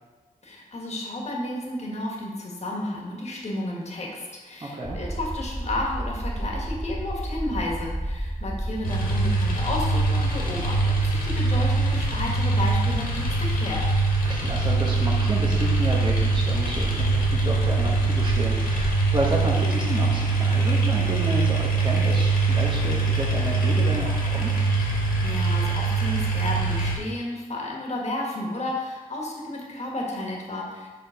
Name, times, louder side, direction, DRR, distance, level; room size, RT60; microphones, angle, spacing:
voice 1, 0.4-13.8 25.2-30.9, left 1 dB, 45° left, -2 dB, 1.5 m, -32 dB
voice 2, 4.6-5.0 14.2-24.5, right 2 dB, 30° right, -3 dB, 1.0 m, -31 dB
sound 1, 4.8-19.6, right 1 dB, 10° right, 0.5 m, -32 dB
sound 2, 8.8-27.0, right 3 dB, 75° left, 1.7 m, -23 dB
5.1 x 4.4 x 5.0 m, 1.3 s
cardioid pair, 80°, 15 cm